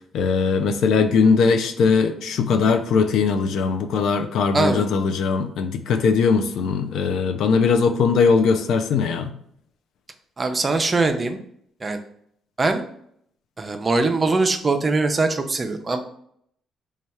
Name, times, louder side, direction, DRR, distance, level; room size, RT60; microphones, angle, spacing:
voice 1, 0.1-9.3, left 5 dB, 80° left, 7 dB, 0.4 m, -20 dB
voice 2, 4.5-4.9 10.4-11.4 11.8-12.0 12.6-12.8 13.6-16.0, right 3 dB, 30° right, 6 dB, 0.5 m, -21 dB
3.2 x 2.3 x 4.2 m, 0.69 s
cardioid pair, 90°, 0 cm